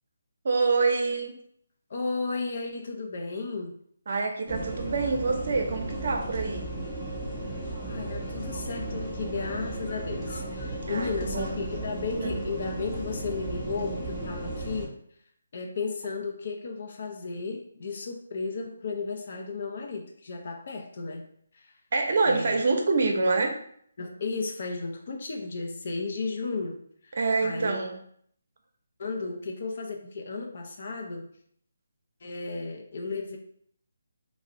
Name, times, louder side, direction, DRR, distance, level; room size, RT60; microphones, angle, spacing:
voice 1, 0.4-1.3 4.1-6.7 10.8-11.6 12.2-12.3 21.9-23.6 27.1-28.0, right 3 dB, 55° right, 4 dB, 0.6 m, -26 dB
voice 2, 1.9-3.8 7.8-15.0 15.5-21.2 21.5-21.7 22.3-22.6 24.0-27.8 29.0-31.3 32.2-33.4, left 4 dB, 50° left, 2 dB, 0.5 m, -34 dB
sound 1, 4.5-14.9, right 1 dB, 15° left, 0.8 m, -35 dB
2.4 x 2.0 x 3.7 m, 0.64 s
hypercardioid pair, 160°, 0 cm